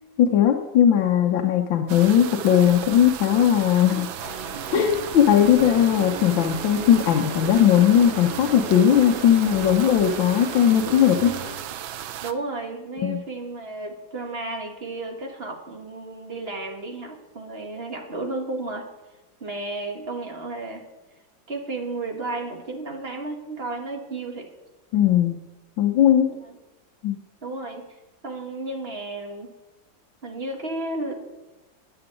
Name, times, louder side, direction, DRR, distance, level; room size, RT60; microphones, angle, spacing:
voice 1, 0.2-4.1 4.7-11.4 13.0-13.2 24.9-25.4 25.8-26.3 27.0-27.2, left 9 dB, 80° left, 3 dB, 1.6 m, -18 dB
sound 1, 1.9-12.3, right 11 dB, 90° right, 1.5 m, -35 dB
Guitar, 4.2-11.6, right 3 dB, 70° right, 4.3 m, -36 dB
voice 2, 12.2-18.9 19.4-20.8 21.5-24.5 26.3-26.5 27.4-27.9 28.2-29.5 30.2-31.1, right 2 dB, 30° right, 2 dB, 1.9 m, -33 dB
10.5 x 7.0 x 9.1 m, 1.1 s
omnidirectional pair, 2.1 m